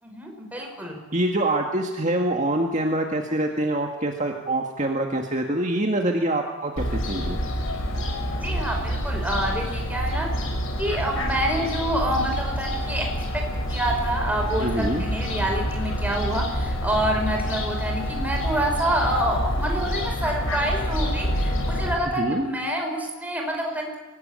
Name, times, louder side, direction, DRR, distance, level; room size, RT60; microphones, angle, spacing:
voice 1, 0.0-1.0 8.4-10.3 10.8-13.1 13.7-24.0, right 1 dB, 10° right, 1 dB, 5.3 m, -27 dB
voice 2, 1.1-7.4 14.6-15.0 22.2-22.5, right 1 dB, 35° right, 2 dB, 1.9 m, -25 dB
Fowl, 6.8-21.9, equal, 80° left, 6.4 m, -27 dB
25.0 x 18.0 x 9.0 m, 1.2 s
head